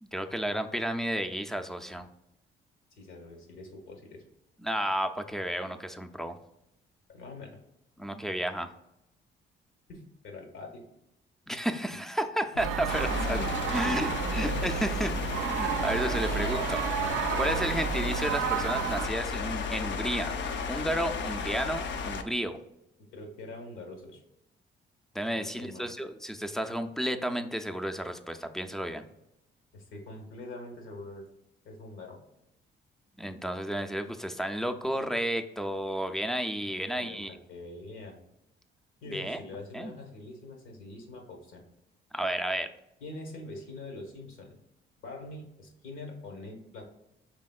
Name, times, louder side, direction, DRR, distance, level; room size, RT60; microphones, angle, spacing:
voice 1, 0.0-2.1 4.6-6.4 8.0-8.7 11.5-13.4 13.7-16.8 17.4-20.4 20.7-22.6 25.1-29.1 33.2-37.4 39.1-39.4 39.7-39.9 42.1-42.7, equal, ahead, 8 dB, 0.4 m, -32 dB
voice 2, 2.9-4.2 7.1-7.6 9.9-10.8 12.5-14.6 17.2-17.5 23.1-24.2 25.3-25.9 29.7-31.3 31.6-32.2 36.7-38.2 39.0-41.6 43.0-44.6 45.0-46.8, left 2 dB, 85° left, 2 dB, 1.3 m, -44 dB
sound 1, 12.6-19.1, right 8 dB, 85° right, 0.4 m, -31 dB
sound 2, 12.9-22.2, left 5 dB, 65° left, 0.5 m, -34 dB
5.0 x 3.5 x 2.3 m, 0.84 s
cardioid pair, 90°, 20 cm